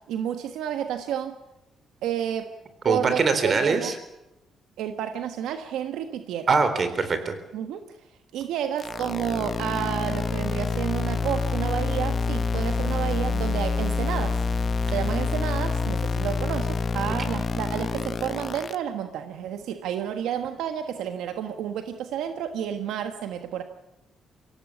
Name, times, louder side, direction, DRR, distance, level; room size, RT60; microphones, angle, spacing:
voice 1, 0.1-1.4 2.0-2.5 2.9-3.9 4.8-6.5 7.5-7.8 8.3-14.4 14.9-23.6, right 9 dB, 85° right, 7 dB, 1.5 m, -30 dB
voice 2, 2.8-4.0 6.5-7.3, right 4 dB, 45° right, 10 dB, 4.0 m, -22 dB
sound 1, 8.8-18.7, left 4 dB, 40° left, 0.9 m, -27 dB
24.0 x 17.0 x 8.5 m, 0.92 s
cardioid pair, 90°, 0 cm